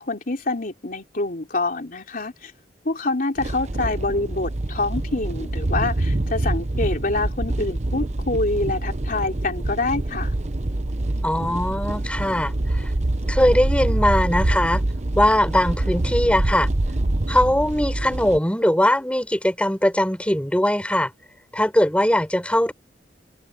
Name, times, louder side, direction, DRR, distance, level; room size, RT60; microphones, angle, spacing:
voice 1, 0.0-2.5 2.9-10.3, left 2 dB, 50° left, 3.5 m, -26 dB
sound 1, 3.4-18.4, right 1 dB, 40° right, 0.9 m, -25 dB
voice 2, 11.2-12.5 13.3-14.8 15.2-16.7 17.3-21.1 21.5-22.7, left 1 dB, 5° left, 5.8 m, -20 dB
head